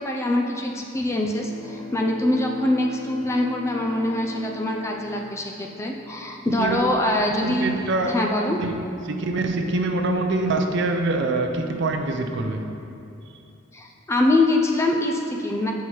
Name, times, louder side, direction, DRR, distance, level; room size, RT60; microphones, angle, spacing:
voice 1, 0.0-7.8 8.0-8.6 13.7-15.7, left 1 dB, 15° left, 1 dB, 0.3 m, -24 dB
Bowed string instrument, 1.1-6.3, left 3 dB, 30° right, 1.0 m, -39 dB
voice 2, 7.4-8.1 8.6-8.8 9.0-12.7, right 2 dB, 55° right, 5 dB, 0.5 m, -24 dB
8.0 x 5.6 x 3.0 m, 2.7 s
head